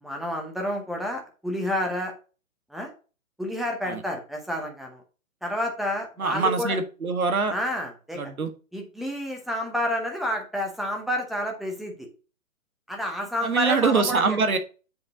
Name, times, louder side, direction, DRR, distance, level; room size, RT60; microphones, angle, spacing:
voice 1, 0.0-2.1 2.7-2.9 3.4-5.0 5.4-6.8 7.5-8.2 8.7-12.1 12.9-14.4, left 1 dB, ahead, 2 dB, 0.8 m, -29 dB
voice 2, 6.2-7.5 8.2-8.5 13.4-14.6, right 4 dB, 80° right, 8 dB, 1.5 m, -24 dB
7.8 x 3.9 x 5.4 m, 0.34 s
hypercardioid pair, 135°, 42 cm